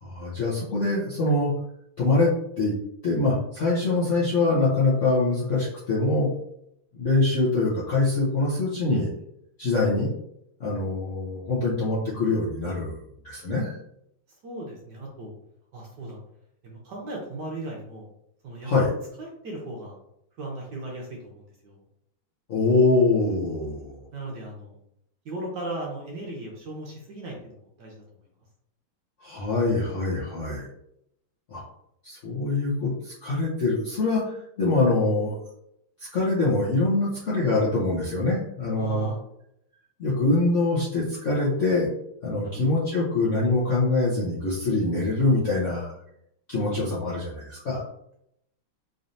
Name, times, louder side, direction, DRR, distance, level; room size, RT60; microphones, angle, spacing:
voice 1, 0.0-1.5 2.0-2.3 2.6-2.7 3.0-6.3 6.9-9.1 9.6-10.1 10.6-13.0 13.2-13.7 18.6-18.9 22.5-24.0 29.2-30.7 31.5-31.6 32.0-35.4 36.1-39.1 40.0-41.9 42.2-45.9 46.5-47.8, left 2 dB, 60° left, -7 dB, 0.8 m, -24 dB
voice 2, 14.4-15.3 15.7-16.2 16.6-18.1 18.4-18.9 19.2-20.0 20.4-21.8 24.1-24.8 25.2-28.0 38.8-39.2 42.4-42.7, right 2 dB, 65° right, -2 dB, 1.2 m, -37 dB
3.9 x 3.2 x 2.7 m, 0.76 s
omnidirectional pair, 2.4 m